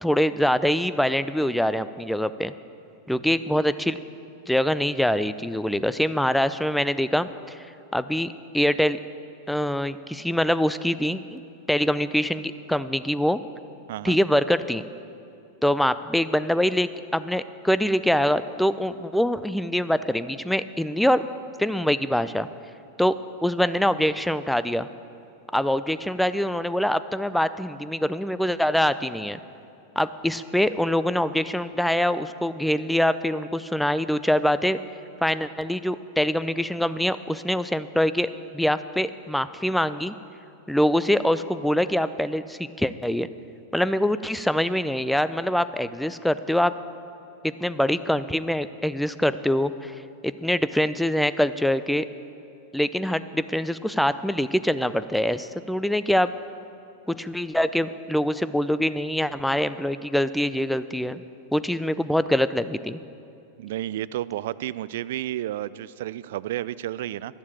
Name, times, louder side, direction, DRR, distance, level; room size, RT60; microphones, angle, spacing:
voice 1, 0.0-2.5 3.1-4.0 4.5-7.6 7.9-9.0 9.5-11.4 11.7-13.4 14.0-14.8 15.6-21.2 21.6-22.5 23.0-23.2 23.4-24.9 25.5-29.4 30.0-34.8 35.2-40.2 40.7-43.3 43.7-46.7 47.4-49.9 50.2-52.1 52.7-56.3 57.1-61.2 61.5-63.0, equal, ahead, 13 dB, 0.4 m, -24 dB
voice 2, 63.6-67.4, right 13 dB, 65° right, 18 dB, 0.3 m, -31 dB
12.0 x 7.4 x 8.7 m, 2.7 s
hypercardioid pair, 105°, 0 cm